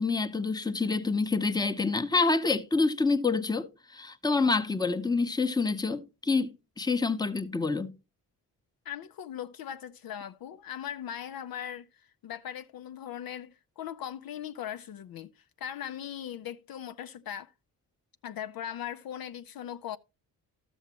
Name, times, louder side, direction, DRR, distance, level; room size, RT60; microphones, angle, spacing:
voice 1, 0.0-3.7 3.9-6.5 6.8-7.9, left 4 dB, 10° left, 0.8 m, -27 dB
voice 2, 8.9-17.5 18.2-20.0, left 10 dB, 60° left, 0.5 m, -39 dB
12.5 x 7.1 x 2.9 m
cardioid pair, 65°, 40 cm